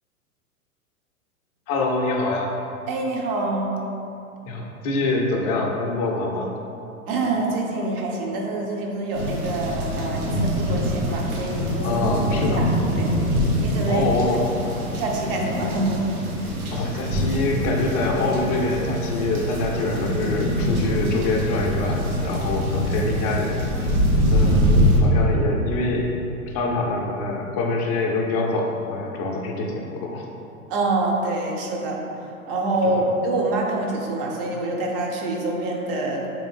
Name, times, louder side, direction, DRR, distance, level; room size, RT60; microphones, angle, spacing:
voice 1, 1.7-2.5 4.5-6.5 11.8-12.6 13.9-14.5 16.7-23.9 24.3-26.1 26.5-30.3 33.0-33.1, left 2 dB, 30° left, 0 dB, 0.4 m, -25 dB
voice 2, 2.9-3.8 7.1-12.0 12.5-12.7 13.0-13.1 13.6-14.1 14.6-14.7 15.0-16.0 30.7-32.0 32.5-36.3, right 2 dB, 40° right, 0 dB, 0.6 m, -26 dB
sound 1, 9.1-25.0, equal, 80° right, 0.9 m, -24 dB
3.6 x 2.5 x 3.5 m, 2.7 s
hypercardioid pair, 110°, 43 cm